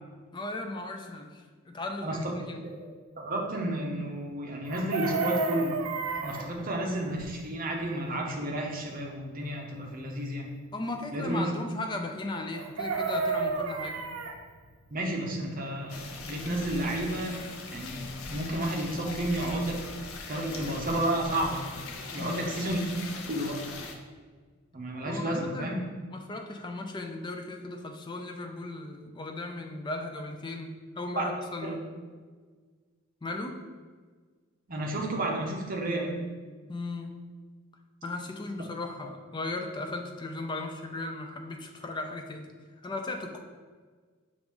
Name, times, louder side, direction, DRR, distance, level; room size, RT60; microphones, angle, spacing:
voice 1, 0.3-2.6 10.7-14.0 22.2-22.6 25.0-31.8 33.2-33.6 36.7-37.2 38.0-42.5 42.8-43.4, left 2 dB, 20° left, 4 dB, 0.3 m, -37 dB
voice 2, 3.2-5.8 6.2-10.5 11.1-11.5 14.9-17.4 17.7-19.8 20.3-21.7 22.1-22.8 23.3-23.6 24.7-25.8 31.2-31.3 31.6-31.7 34.7-36.1, right 1 dB, 40° right, 0 dB, 0.7 m, -31 dB
Chicken rooster, 4.7-6.5 12.5-14.4 16.6-16.7 17.0-17.2, right 4 dB, 85° right, 0.5 m, -31 dB
sound 1, 15.9-23.9, left 3 dB, 80° left, 0.6 m, -41 dB
5.8 x 2.5 x 3.5 m, 1.5 s
head